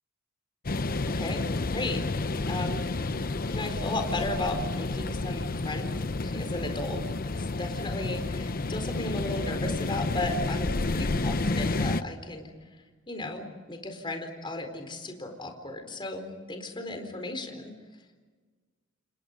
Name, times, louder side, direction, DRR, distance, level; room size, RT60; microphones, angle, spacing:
sound 1, 0.6-12.0, left 2 dB, 45° left, 0.8 m, -30 dB
voice 1, 1.7-2.0 2.4-3.2 3.5-5.9 6.2-7.0 7.4-12.5 13.1-17.7, left 2 dB, 25° left, 5 dB, 4.3 m, -35 dB
30.0 x 29.0 x 5.3 m, 1.4 s
head